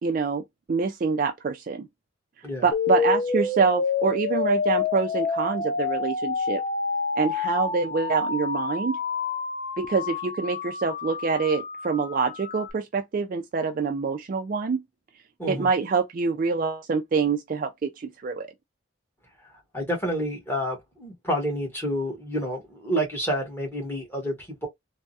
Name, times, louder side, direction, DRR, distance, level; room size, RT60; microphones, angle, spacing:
voice 1, 0.0-0.4 0.7-1.9 2.6-6.6 7.2-9.0 9.8-14.8 15.5-18.5, right 5 dB, 40° right, 0.3 m, -26 dB
sound 1, 2.7-12.7, left 4 dB, 40° left, 0.4 m, -28 dB
voice 2, 19.7-24.7, equal, 10° left, 1.1 m, -29 dB
3.4 x 2.0 x 2.6 m
head